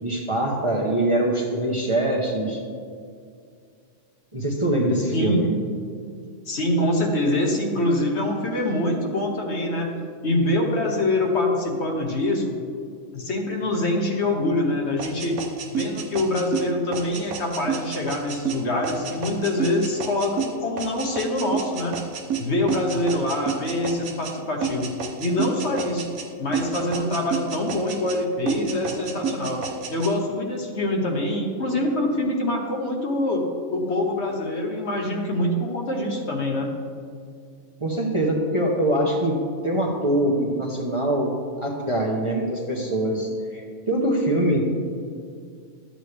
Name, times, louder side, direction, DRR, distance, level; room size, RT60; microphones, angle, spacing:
voice 1, 0.0-2.6 4.3-5.5 37.8-44.7, right 1 dB, 25° right, -2 dB, 0.9 m, -23 dB
voice 2, 5.1-5.6 6.5-9.9 10.2-12.5 13.1-15.4 15.7-22.0 22.4-24.9 25.2-26.1 26.4-29.6 29.9-36.7, left 1 dB, 55° left, 1 dB, 1.3 m, -24 dB
sound 1, 15.0-24.4 24.6-26.3 26.5-28.2 28.5-30.1, right 7 dB, 85° right, 1.3 m, -30 dB
12.0 x 7.8 x 3.3 m, 2.3 s
omnidirectional pair, 1.4 m